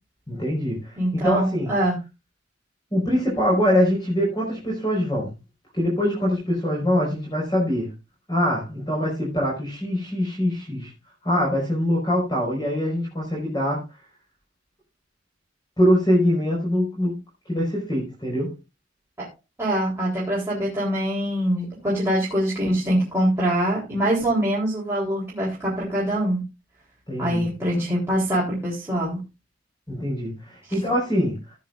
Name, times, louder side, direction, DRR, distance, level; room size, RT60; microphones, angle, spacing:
voice 1, 0.3-1.7 2.9-5.3 5.7-7.9 8.3-10.9 11.2-13.8 15.8-17.2 17.5-18.5 27.1-27.4 29.9-31.4, equal, 20° left, -3 dB, 5.2 m, -23 dB
voice 2, 1.0-2.0 19.2-19.3 19.6-26.5 27.2-29.2, right 1 dB, 15° right, -7 dB, 3.8 m, -24 dB
15.5 x 9.1 x 2.6 m, 0.25 s
head